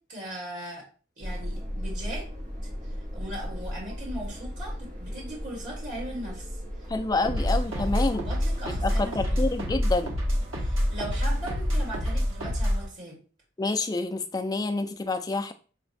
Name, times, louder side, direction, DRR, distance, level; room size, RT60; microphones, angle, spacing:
voice 1, 0.1-0.9 1.2-2.2 3.1-6.6 7.2-7.3 7.7-9.5 10.5-13.2, right 1 dB, 55° right, -4 dB, 1.6 m, -39 dB
sound 1, 1.2-12.3, equal, 40° right, 1.0 m, -37 dB
voice 2, 6.9-8.2 8.8-10.1 13.6-15.5, left 3 dB, 20° left, 8 dB, 0.3 m, -28 dB
sound 2, 7.2-12.9, equal, 85° right, 1.1 m, -27 dB
5.9 x 2.3 x 2.5 m, 0.38 s
head